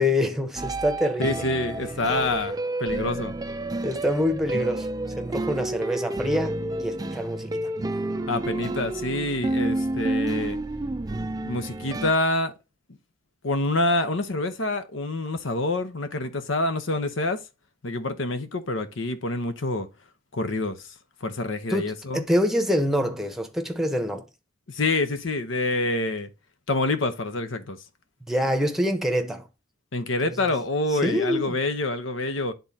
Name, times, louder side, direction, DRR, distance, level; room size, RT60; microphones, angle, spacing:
voice 1, 0.0-1.4 3.8-4.9 5.2-7.6 21.7-24.2 28.3-29.5 30.2-30.6 30.9-31.6, left 1 dB, ahead, 0.9 m, -26 dB
sound 1, 0.6-12.1, right 2 dB, 20° right, 0.4 m, -30 dB
voice 2, 1.2-3.3 8.3-10.6 11.4-12.5 13.4-17.4 17.8-19.9 20.3-20.8 21.2-22.2 24.7-26.3 26.7-27.8 29.9-32.5, left 2 dB, 75° left, 0.9 m, -27 dB
10.5 x 3.9 x 2.8 m
head